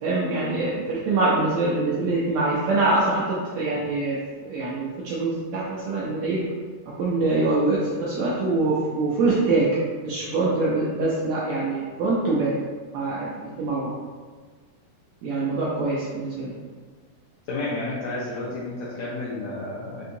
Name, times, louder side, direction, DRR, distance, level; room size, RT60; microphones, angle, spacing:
voice 1, 0.0-6.5 6.9-9.7 10.0-12.6 12.9-13.9 15.2-16.6, right 2 dB, 80° right, -6 dB, 1.6 m, -24 dB
voice 2, 17.5-20.1, left 2 dB, 80° left, -6 dB, 1.6 m, -31 dB
5.3 x 2.7 x 2.6 m, 1.5 s
omnidirectional pair, 3.7 m